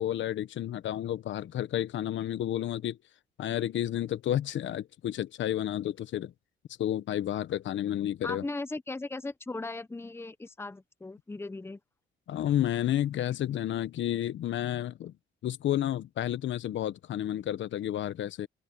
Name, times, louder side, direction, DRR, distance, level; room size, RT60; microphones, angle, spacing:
voice 1, 0.0-3.0 3.4-6.3 6.8-8.4 12.3-15.1 15.4-18.5, left 11 dB, 70° left, 1.1 m, -31 dB
voice 2, 8.2-11.8, left 2 dB, 10° left, 0.9 m, -38 dB
open air
cardioid pair, 90°, 20 cm